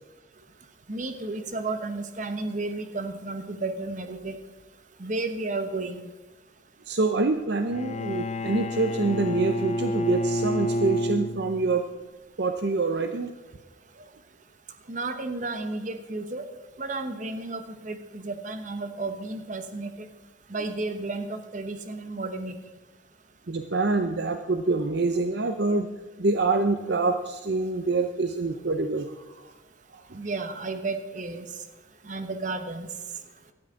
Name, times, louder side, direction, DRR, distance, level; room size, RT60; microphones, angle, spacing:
voice 1, 0.9-4.4 5.0-6.1 14.9-16.4 16.8-20.1 20.5-22.6 30.2-31.5 32.0-32.9, right 3 dB, 40° right, 8 dB, 1.1 m, -32 dB
voice 2, 6.9-11.8 12.4-13.3 14.0-14.1 23.5-25.9 26.2-29.5 29.9-30.2, right 3 dB, 55° right, 7 dB, 0.7 m, -26 dB
Bowed string instrument, 7.7-11.8, left 1 dB, 35° left, 0.6 m, -29 dB
17.5 x 12.5 x 3.8 m, 1.2 s
head